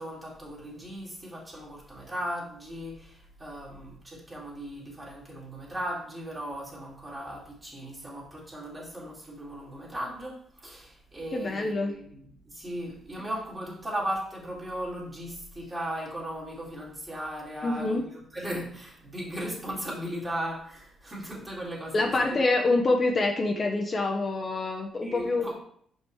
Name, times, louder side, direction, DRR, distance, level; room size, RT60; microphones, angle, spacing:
voice 1, 0.0-10.3 10.6-18.1 18.3-22.4 25.0-25.5, right 1 dB, 20° right, -4 dB, 2.4 m, -37 dB
voice 2, 11.3-11.9 17.6-18.1 21.9-25.5, left 2 dB, 35° left, 1 dB, 0.8 m, -26 dB
5.9 x 5.3 x 3.2 m, 0.62 s
cardioid pair, 90°, 0 cm